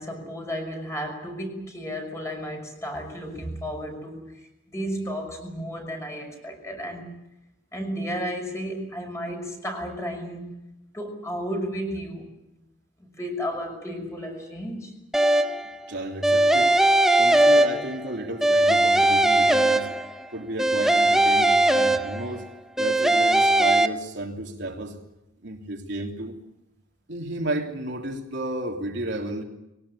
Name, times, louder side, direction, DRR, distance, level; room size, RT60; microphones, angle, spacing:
voice 1, 0.0-7.1 7.7-10.6 10.9-12.3 13.0-15.0, equal, 15° left, 2 dB, 6.1 m, -33 dB
sound 1, 15.1-15.7 16.2-18.1 18.4-20.2 20.6-22.4 22.8-23.9, right 1 dB, ahead, 0.8 m, -19 dB
voice 2, 15.9-16.8 17.2-19.9 20.3-22.5 22.8-24.9 25.4-26.4 27.1-29.4, right 1 dB, 60° right, 0 dB, 3.1 m, -32 dB
22.5 x 18.5 x 10.0 m, 0.88 s
head